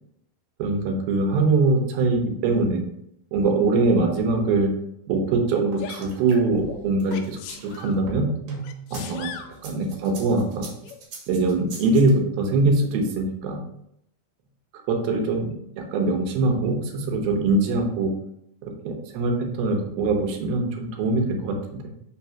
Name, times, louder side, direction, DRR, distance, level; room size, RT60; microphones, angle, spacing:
voice 1, 0.6-2.8 3.3-4.7 5.1-8.3 8.9-9.3 9.6-10.7 11.3-13.6 14.9-15.5 15.8-18.1 18.6-19.3 19.6-21.6, right 3 dB, 90° right, 3 dB, 2.9 m, -22 dB
sound 1, 5.7-9.1 9.5-12.1, right 4 dB, 65° right, 3.1 m, -39 dB
Sneeze, 5.8-6.1 7.1-8.0 8.6-9.5 10.8-11.0, left 9 dB, 80° left, 2.1 m, -38 dB
6.0 x 3.4 x 5.6 m, 0.76 s
omnidirectional pair, 4.2 m